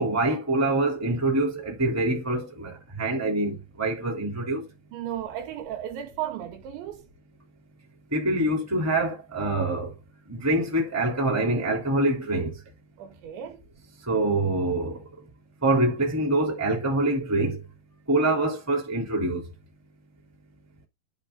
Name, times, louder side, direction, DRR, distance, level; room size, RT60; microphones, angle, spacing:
voice 1, 0.0-4.6 8.1-9.9 10.3-12.5 14.1-15.0 15.6-17.6 18.1-19.5, right 2 dB, 5° right, 2.4 m, -25 dB
voice 2, 4.9-7.0 13.0-13.6, right 11 dB, 85° right, 4.2 m, -34 dB
12.5 x 4.8 x 3.8 m
omnidirectional pair, 5.1 m